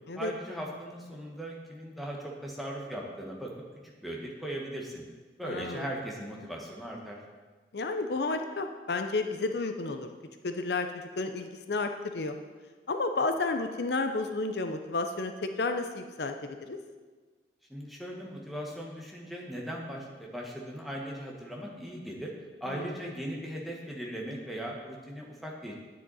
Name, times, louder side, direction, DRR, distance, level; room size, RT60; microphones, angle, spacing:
voice 1, 0.1-3.5 3.8-5.0 5.4-7.2 17.7-22.3 22.6-25.7, right 1 dB, ahead, -2 dB, 1.4 m, -38 dB
voice 2, 5.4-5.9 7.7-10.1 10.4-12.4 12.9-16.8 22.7-22.9, left 3 dB, 70° left, 7 dB, 0.6 m, -32 dB
10.5 x 9.4 x 4.1 m, 1.4 s
head